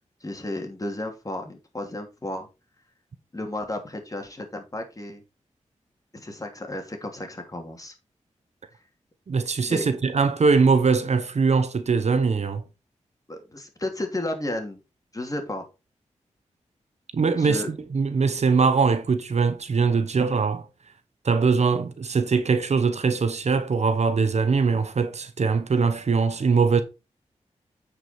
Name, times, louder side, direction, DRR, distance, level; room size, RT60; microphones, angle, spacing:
voice 1, 0.2-2.5 3.3-5.2 6.1-7.9 9.7-9.8 13.3-14.8 15.1-15.6 17.4-17.7, left 1 dB, 30° left, 2.9 m, -33 dB
voice 2, 9.3-12.6 17.1-20.6 21.2-26.8, right 5 dB, 60° right, 1.0 m, -22 dB
9.0 x 5.2 x 4.5 m
cardioid pair, 45°, 13 cm